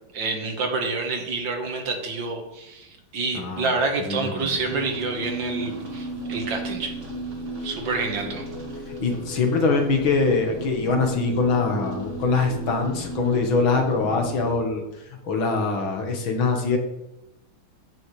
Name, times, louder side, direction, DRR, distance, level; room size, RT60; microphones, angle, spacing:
voice 1, 0.1-6.9 7.6-8.4, right 3 dB, 65° right, 3 dB, 2.0 m, -28 dB
voice 2, 3.3-3.7 4.1-4.5 8.9-14.8 15.2-16.8, left 4 dB, 70° left, 3 dB, 2.2 m, -23 dB
sound 1, 4.4-14.6, right 1 dB, 35° right, 2.0 m, -34 dB
14.5 x 6.3 x 3.2 m, 0.90 s
omnidirectional pair, 2.3 m